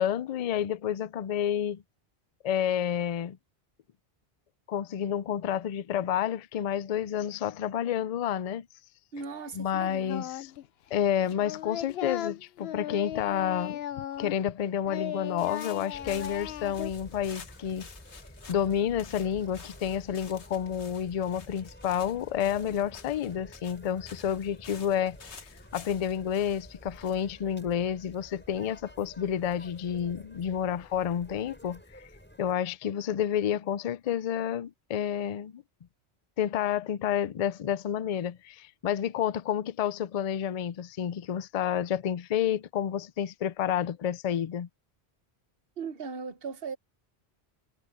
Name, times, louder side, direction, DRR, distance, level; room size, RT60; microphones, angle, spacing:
voice 1, 0.0-1.8 2.4-3.4 4.7-8.7 9.5-10.5 10.9-13.8 14.2-17.9 18.5-25.2 25.7-32.0 32.4-35.6 36.4-44.7, left 9 dB, 50° left, 0.4 m, -30 dB
voice 2, 9.1-10.2 45.8-46.8, right 5 dB, 60° right, 1.2 m, -38 dB
Singing, 10.1-10.7 10.9-14.6 14.8-16.9, left 11 dB, 70° left, 0.8 m, -37 dB
sound 1, 15.4-28.2, left 5 dB, 90° left, 1.7 m, -51 dB
sound 2, 15.9-32.5, equal, 10° left, 5.4 m, -50 dB
omnidirectional pair, 1.1 m